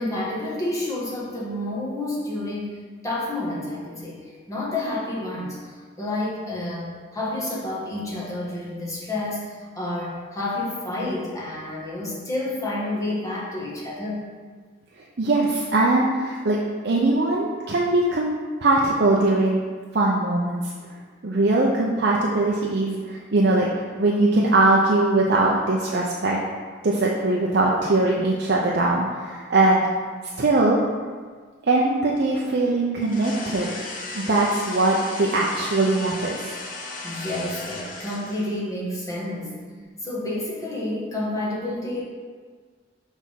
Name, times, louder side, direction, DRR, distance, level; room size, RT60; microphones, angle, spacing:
voice 1, 0.0-14.2 37.0-39.6 40.0-42.0, left 1 dB, 15° left, -5 dB, 1.5 m, -29 dB
voice 2, 15.2-16.6 16.8-18.3 18.6-19.6 19.9-20.7 21.2-23.7 24.0-26.4 26.8-29.8 30.4-30.8 31.6-33.7 34.1-36.4, right 2 dB, 55° right, -3 dB, 0.6 m, -21 dB
sound 1, 33.0-38.6, left 3 dB, 45° left, 0.9 m, -36 dB
6.3 x 3.5 x 5.7 m, 1.6 s
head